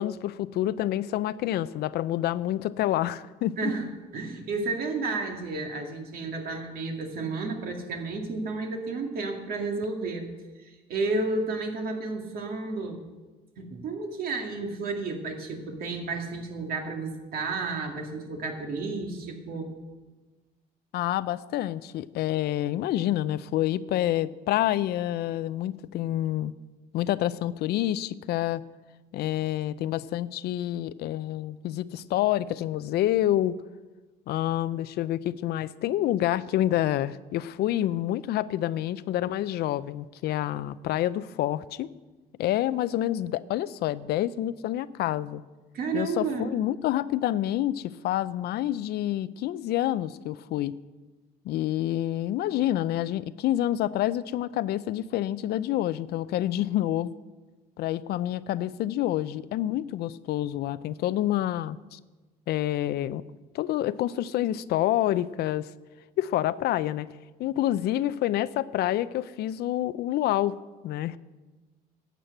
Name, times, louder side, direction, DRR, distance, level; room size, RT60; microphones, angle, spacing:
voice 1, 0.0-3.7 20.9-26.5 26.9-28.6 29.1-33.6 34.3-41.9 42.4-45.4 45.9-50.8 51.5-57.1 57.8-62.0 62.5-63.2 63.5-65.7 66.2-67.1 67.4-70.5 70.8-71.2, left 13 dB, 70° left, 16 dB, 0.5 m, -28 dB
voice 2, 3.6-3.9 4.1-10.3 10.6-13.0 13.6-19.7 45.7-46.5, right 3 dB, 60° right, 3 dB, 2.3 m, -32 dB
12.0 x 7.6 x 8.0 m, 1.2 s
cardioid pair, 110°, 17 cm